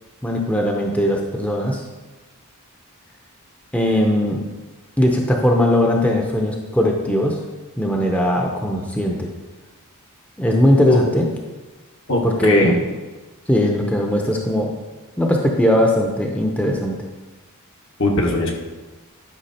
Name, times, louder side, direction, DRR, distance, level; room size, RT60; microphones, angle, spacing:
voice 1, 0.2-1.8 3.7-4.4 5.0-7.4 7.8-9.3 10.4-11.3 12.2-12.7 13.5-14.7 15.2-17.0, equal, 5° left, 0 dB, 0.8 m, -19 dB
voice 2, 12.1-12.7 18.0-18.5, left 2 dB, 60° left, 0 dB, 1.7 m, -19 dB
11.5 x 5.9 x 4.3 m, 1.2 s
head